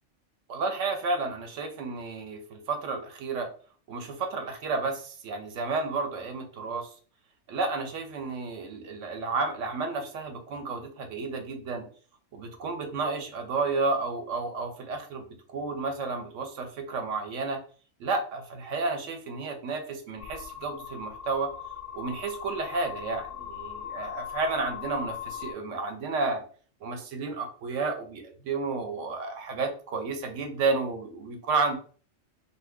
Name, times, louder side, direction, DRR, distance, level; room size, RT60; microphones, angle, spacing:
voice 1, 0.5-3.5 3.9-6.9 7.5-11.9 12.3-17.6 18.0-21.5 21.9-26.4 26.8-31.8, right 3 dB, 75° right, 6 dB, 1.0 m, -31 dB
sound 1, 20.2-25.5, left 9 dB, 60° left, 0.6 m, -39 dB
2.7 x 2.4 x 3.5 m, 0.42 s
omnidirectional pair, 1.3 m